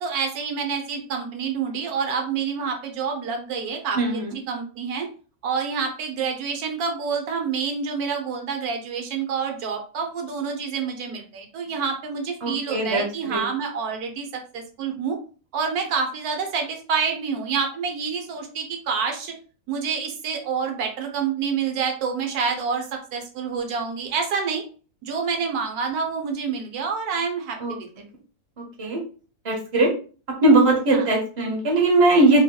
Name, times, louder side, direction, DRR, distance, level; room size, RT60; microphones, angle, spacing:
voice 1, 0.0-4.2 4.5-5.1 5.4-15.2 15.5-19.3 19.7-24.6 25.0-27.9 30.9-31.1, right 5 dB, 80° right, 4 dB, 1.2 m, -27 dB
voice 2, 4.0-4.3 12.4-13.4 27.6-27.8 28.6-29.0 29.4-29.9 30.4-32.4, right 2 dB, 25° right, -1 dB, 0.8 m, -20 dB
3.8 x 2.7 x 2.2 m, 0.39 s
omnidirectional pair, 1.6 m